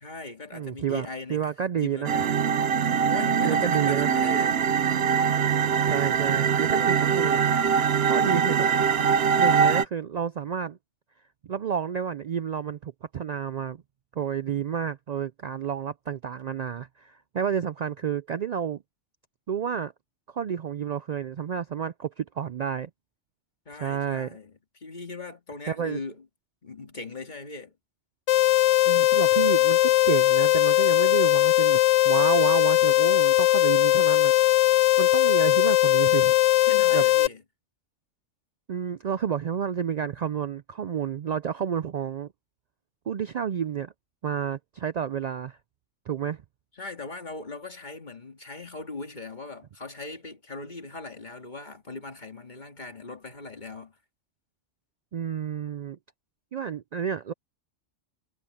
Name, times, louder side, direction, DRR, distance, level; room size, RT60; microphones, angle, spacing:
voice 1, 0.0-1.5 1.7-2.4 3.1-4.8 23.7-26.3 26.6-27.8 36.6-37.4 46.7-54.0, left 3 dB, 40° left, 2.3 m, -39 dB
voice 2, 0.5-2.2 3.4-4.1 5.8-7.4 8.0-8.7 9.4-10.8 11.5-13.8 14.2-18.8 19.5-19.9 20.3-22.9 23.8-24.4 25.7-26.0 28.9-31.8 32.0-34.3 35.0-36.3 36.9-37.0 38.7-42.3 43.1-43.9 44.2-45.6 46.1-46.4 55.1-56.0 56.5-57.3, right 8 dB, 80° right, 0.3 m, -30 dB
sound 1, 2.0-9.8, right 7 dB, 60° right, 0.9 m, -23 dB
sound 2, 28.3-37.3, left 16 dB, 80° left, 0.9 m, -20 dB
omnidirectional pair, 1.3 m